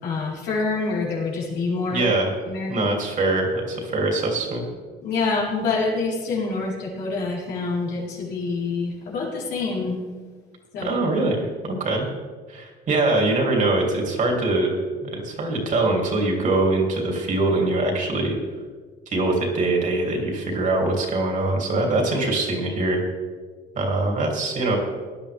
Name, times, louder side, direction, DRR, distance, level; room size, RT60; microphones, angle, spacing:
voice 1, 0.0-2.1 2.5-2.9 5.0-10.0 10.7-11.0, left 3 dB, 85° left, -5 dB, 4.4 m, -26 dB
voice 2, 1.9-2.4 2.7-4.7 10.8-12.1 12.5-14.7 15.0-18.3 19.1-23.0 23.7-24.8, right 2 dB, 50° right, 1 dB, 3.1 m, -23 dB
17.0 x 10.5 x 3.5 m, 1.5 s
cardioid pair, 110°, 17 cm